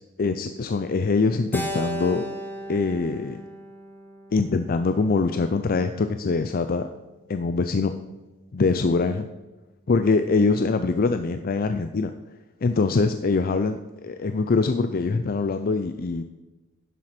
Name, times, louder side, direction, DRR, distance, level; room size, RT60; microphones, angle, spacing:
voice 1, 0.2-2.2 2.7-3.4 4.3-6.9 7.3-7.9 8.5-9.3 9.9-12.1 12.6-16.2, left 4 dB, 45° left, 9 dB, 0.5 m, -23 dB
Keyboard (musical), 1.5-5.9, equal, 10° left, 1.4 m, -36 dB
11.0 x 7.5 x 4.3 m, 1.1 s
head